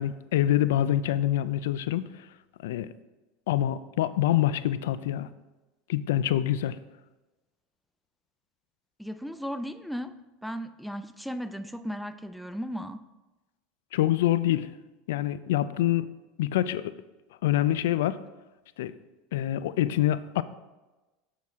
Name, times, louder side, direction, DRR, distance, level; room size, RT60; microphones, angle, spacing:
voice 1, 0.0-2.1 2.6-2.9 3.5-5.3 5.9-6.8 13.9-14.7 15.1-16.1 16.4-16.9 17.4-18.2 18.8-18.9 19.3-20.4, left 12 dB, 85° left, 0.3 m, -25 dB
voice 2, 9.0-13.0, equal, ahead, 0.3 m, -36 dB
7.5 x 6.1 x 3.6 m
supercardioid pair, 125°, 0 cm